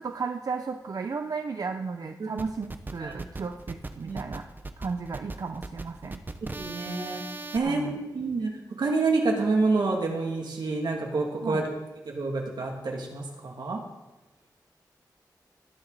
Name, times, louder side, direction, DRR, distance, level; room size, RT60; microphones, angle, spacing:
voice 1, 0.0-4.4 4.8-6.2 7.6-7.9 11.4-11.6, right 4 dB, 55° right, 6 dB, 0.6 m, -34 dB
sound 1, 2.4-7.6, right 2 dB, 25° right, 0.8 m, -39 dB
voice 2, 6.6-7.2 7.5-8.5 8.8-11.7 12.1-13.8, right 3 dB, 85° right, 0 dB, 2.4 m, -28 dB
18.0 x 9.8 x 4.1 m, 1.1 s
wide cardioid pair, 130°, 7 cm